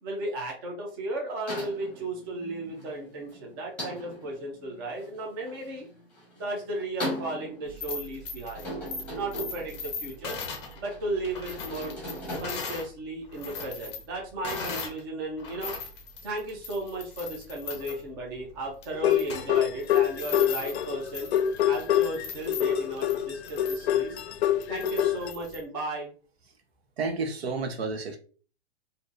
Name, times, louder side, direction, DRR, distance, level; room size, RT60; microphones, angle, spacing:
voice 1, 0.0-5.9 6.3-8.6 9.1-10.4 10.8-11.9 12.3-15.7 16.2-21.3 21.7-24.2 24.7-26.1, right 1 dB, 20° right, -1 dB, 0.5 m, -35 dB
sound 1, 1.5-12.4, equal, 5° left, 1.2 m, -40 dB
sound 2, 7.7-12.9 13.2-15.0 15.4-25.6, left 4 dB, 25° left, 0.6 m, -39 dB
sound 3, 18.9-25.3, left 11 dB, 85° left, 0.5 m, -26 dB
voice 2, 27.0-28.2, right 4 dB, 70° right, 5 dB, 0.9 m, -30 dB
3.4 x 2.6 x 2.5 m, 0.39 s
hypercardioid pair, 170°, 32 cm